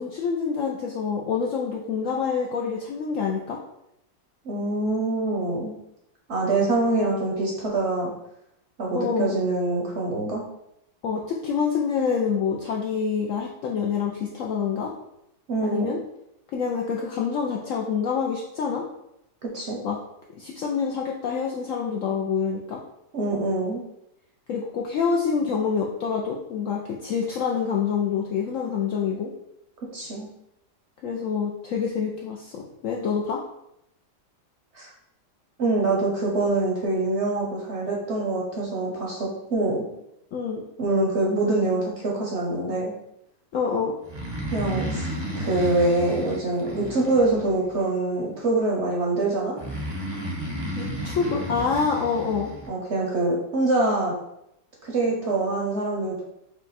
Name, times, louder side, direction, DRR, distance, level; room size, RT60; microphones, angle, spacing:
voice 1, 0.0-3.6 8.9-9.4 11.0-14.9 15.6-16.0 16.5-18.8 19.8-20.0 20.4-22.8 24.5-29.3 31.0-33.4 40.3-40.6 43.5-43.9 50.8-52.5, left 6 dB, 75° left, -1 dB, 0.7 m, -26 dB
voice 2, 4.4-5.7 6.3-8.1 8.8-10.4 15.5-15.9 19.5-19.8 23.1-23.8 29.9-30.3 34.7-34.9 35.6-39.8 40.8-42.9 44.5-45.1 45.4-49.5 52.7-54.1 54.8-56.2, right 2 dB, 55° right, -2 dB, 0.9 m, -25 dB
Breathing, 44.0-47.7 49.6-52.7, right 1 dB, 25° right, 0.5 m, -32 dB
4.8 x 2.2 x 4.1 m, 0.81 s
omnidirectional pair, 1.8 m